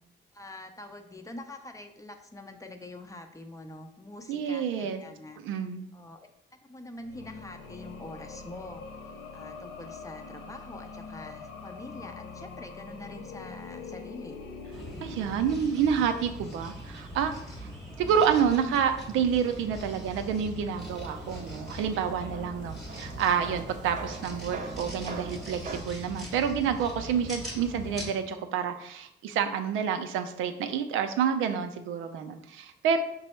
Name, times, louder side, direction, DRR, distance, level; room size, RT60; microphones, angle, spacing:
voice 1, 0.3-5.4 5.9-6.2 6.6-8.8 9.3-14.4, left 2 dB, 15° left, 5 dB, 0.5 m, -45 dB
voice 2, 4.3-5.0 5.4-5.8 15.0-17.7 18.0-33.0, right 7 dB, 90° right, 7 dB, 0.5 m, -28 dB
sound 1, 7.0-16.0, left 4 dB, 90° left, 0.5 m, -44 dB
sound 2, 14.7-28.1, equal, ahead, 1.0 m, -41 dB
sound 3, 20.8-25.8, right 3 dB, 40° right, 0.6 m, -42 dB
5.2 x 2.0 x 4.3 m, 0.77 s
cardioid pair, 90°, 20 cm